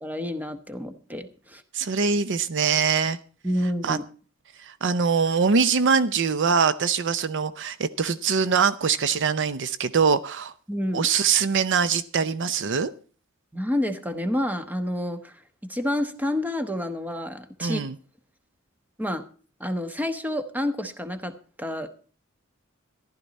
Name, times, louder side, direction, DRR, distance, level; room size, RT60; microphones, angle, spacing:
voice 1, 0.0-1.6 3.4-4.0 10.7-11.1 13.5-15.4 15.7-17.8 19.0-19.2 19.6-21.9, left 1 dB, 10° right, 9 dB, 1.1 m, -29 dB
voice 2, 1.7-3.2 3.8-4.0 4.6-10.5 10.9-12.9 17.6-17.9, right 5 dB, 60° right, 14 dB, 0.6 m, -23 dB
14.5 x 11.5 x 4.1 m, 0.39 s
head